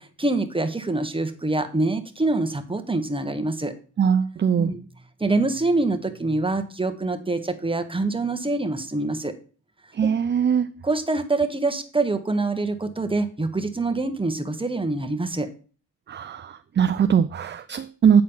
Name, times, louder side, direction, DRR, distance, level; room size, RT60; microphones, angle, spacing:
voice 1, 0.0-3.7 4.6-4.8 5.2-9.3 10.0-10.1 10.8-15.5, right 2 dB, 15° right, 8 dB, 1.3 m, -25 dB
voice 2, 4.0-4.7 9.9-10.7 16.1-18.2, right 7 dB, 35° right, 12 dB, 0.4 m, -21 dB
8.6 x 4.3 x 5.6 m, 0.39 s
cardioid pair, 55°, 31 cm